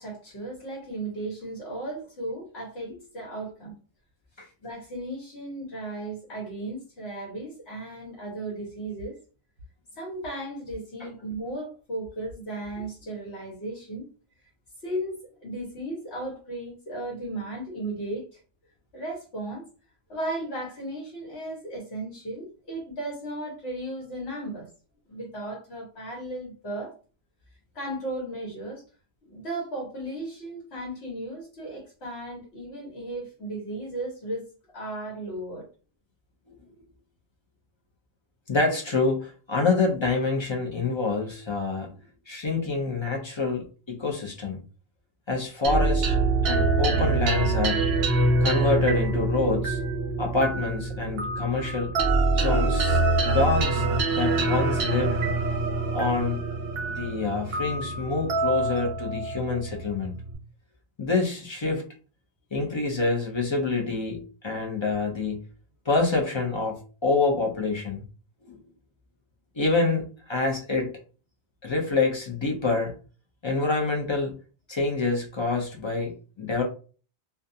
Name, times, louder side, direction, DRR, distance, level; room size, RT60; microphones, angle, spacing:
voice 1, 0.0-3.8 4.6-9.2 9.9-14.1 14.8-18.4 18.9-19.6 20.1-24.7 25.1-26.9 27.7-28.8 29.3-34.5 34.7-35.7, right 1 dB, 70° left, -4 dB, 1.2 m, -35 dB
voice 2, 38.5-41.9 42.3-44.6 45.3-46.1 46.5-47.8 48.4-49.8 50.2-51.9 52.3-53.9 54.1-55.2 55.9-56.4 56.9-60.1 61.0-61.8 62.5-65.4 65.9-68.0 68.4-68.6 69.6-70.9 71.6-72.9 73.4-74.3 74.7-76.6, left 3 dB, 40° left, 0 dB, 0.4 m, -26 dB
sound 1, 45.6-60.3, right 3 dB, 65° right, 0.8 m, -25 dB
2.3 x 2.2 x 2.6 m, 0.37 s
omnidirectional pair, 1.2 m